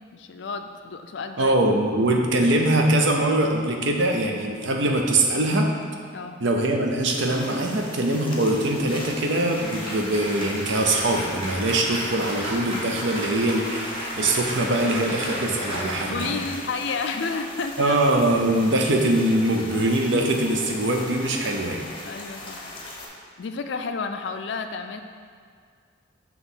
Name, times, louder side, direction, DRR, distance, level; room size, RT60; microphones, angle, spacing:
voice 1, 0.0-1.5 6.1-6.4 14.8-15.0 16.1-18.0 22.0-22.7 23.4-25.0, left 4 dB, 60° left, 7 dB, 0.4 m, -31 dB
voice 2, 1.4-5.7 6.4-16.4 17.8-21.9, right 1 dB, 60° right, 2 dB, 0.6 m, -22 dB
sound 1, 7.0-23.1, left 1 dB, 25° left, 0.7 m, -39 dB
Applause, 9.0-18.8, equal, 30° right, 1.4 m, -34 dB
6.1 x 3.0 x 5.5 m, 2.1 s
head